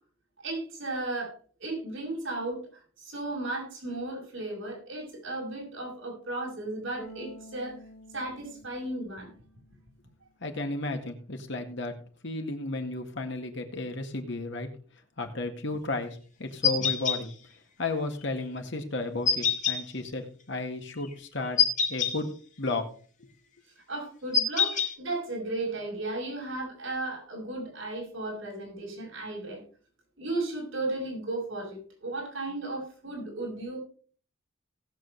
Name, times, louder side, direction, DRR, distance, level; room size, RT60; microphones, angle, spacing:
voice 1, 0.4-2.6 3.0-7.8 8.1-9.3 23.9-29.6 30.2-33.8, right 2 dB, 70° right, -2 dB, 6.0 m, -35 dB
Bass guitar, 7.0-10.1, right 1 dB, 15° left, 3.3 m, -50 dB
voice 2, 10.4-11.9 12.2-14.7 15.2-17.3 17.8-21.6 21.9-22.3 22.6-22.8, left 2 dB, 60° left, 4 dB, 1.9 m, -33 dB
sound 1, 16.6-17.2 19.3-19.8 21.6-22.1 24.3-24.9, left 6 dB, 40° left, 1.8 m, -24 dB
18.5 x 7.5 x 3.3 m, 0.42 s
head